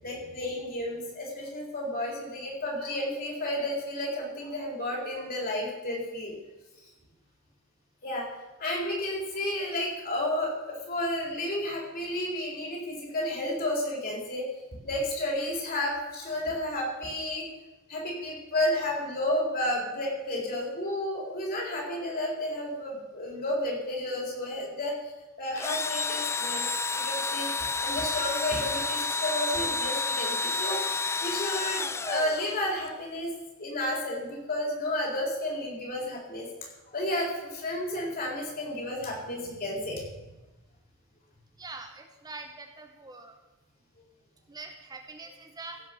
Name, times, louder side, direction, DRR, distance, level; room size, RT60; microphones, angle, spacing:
voice 1, 0.0-6.3 8.0-14.4 14.8-17.4 17.9-25.1 25.4-26.6 26.9-27.5 27.8-33.3 33.6-40.0, left 1 dB, 45° left, -2 dB, 4.2 m, -32 dB
Engine / Drill, 25.6-32.9, left 3 dB, 15° left, 0.3 m, -30 dB
voice 2, 41.6-43.4 44.5-45.8, right 3 dB, 20° right, 5 dB, 0.8 m, -44 dB
16.0 x 5.9 x 6.9 m, 1.1 s
head